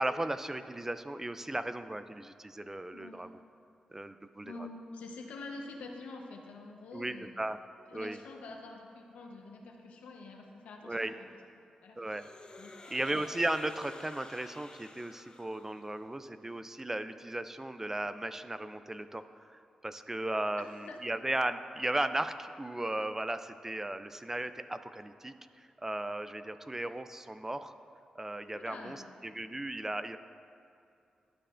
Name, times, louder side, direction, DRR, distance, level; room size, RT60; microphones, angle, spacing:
voice 1, 0.0-3.3 3.9-4.5 6.9-7.6 7.9-8.2 10.8-11.1 12.0-12.3 12.9-19.2 19.5-27.7 28.2-30.2, right 1 dB, 20° right, 11 dB, 0.3 m, -36 dB
voice 2, 2.9-3.3 4.4-7.4 7.9-11.3 11.8-12.0 12.6-12.7 20.6-21.0 28.5-29.1, left 3 dB, 90° left, 1 dB, 0.9 m, -46 dB
sound 1, 12.1-16.1, left 2 dB, 40° left, 0.8 m, -52 dB
12.0 x 6.5 x 2.5 m, 2.6 s
cardioid pair, 60°, 2 cm